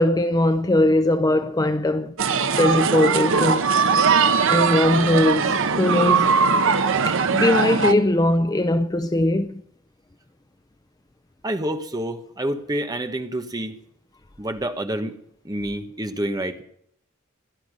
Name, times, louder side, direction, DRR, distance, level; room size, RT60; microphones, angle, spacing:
voice 1, 0.0-2.1 2.6-3.6 4.5-6.4 7.1-9.6, left 1 dB, 15° left, 0.5 m, -20 dB
sound 1, 2.2-7.9, right 5 dB, 65° right, 1.0 m, -20 dB
voice 2, 11.4-13.8 14.4-15.2 15.4-16.6, right 1 dB, 20° right, 1.3 m, -28 dB
17.0 x 12.0 x 6.4 m
head